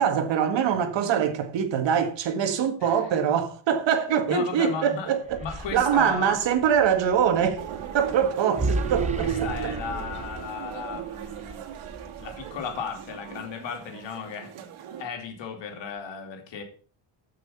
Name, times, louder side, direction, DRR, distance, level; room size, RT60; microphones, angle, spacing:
voice 1, 0.0-5.4 5.7-7.6 7.9-9.7, right 8 dB, 60° right, 1.9 m, -24 dB
voice 2, 4.3-5.1 5.4-6.4 9.2-11.6 12.2-14.5 15.0-16.6, left 6 dB, 60° left, 3.1 m, -35 dB
sound 1, 5.1-13.3, right 2 dB, 15° right, 0.9 m, -35 dB
sound 2, 7.6-15.0, right 9 dB, 80° right, 2.3 m, -36 dB
14.5 x 6.2 x 5.6 m
cardioid pair, 150°, 49 cm